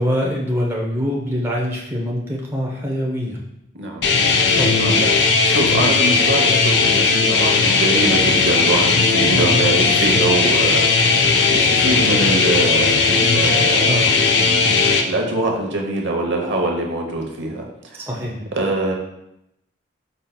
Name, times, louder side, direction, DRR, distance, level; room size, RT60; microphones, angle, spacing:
voice 1, 0.0-3.4 4.5-4.9 9.2-9.6 11.5-12.2 13.8-14.2 18.0-18.4, equal, 15° right, -3 dB, 0.6 m, -24 dB
voice 2, 3.7-4.1 4.8-5.1 5.4-10.8 11.5-14.0 14.4-18.1 18.4-18.9, right 2 dB, 70° right, 1 dB, 0.9 m, -24 dB
sound 1, 4.0-15.0, left 4 dB, 65° left, 0.4 m, -16 dB
5.2 x 4.3 x 2.2 m, 0.82 s
head